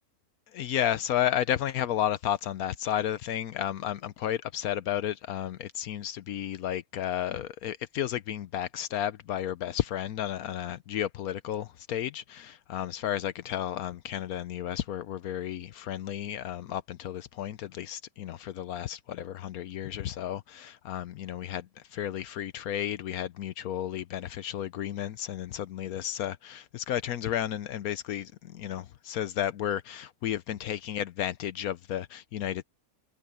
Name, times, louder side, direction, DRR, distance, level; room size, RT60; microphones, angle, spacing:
voice 1, 0.5-32.6, left 11 dB, 75° left, 1.1 m, -32 dB
omnidirectional pair, 1.6 m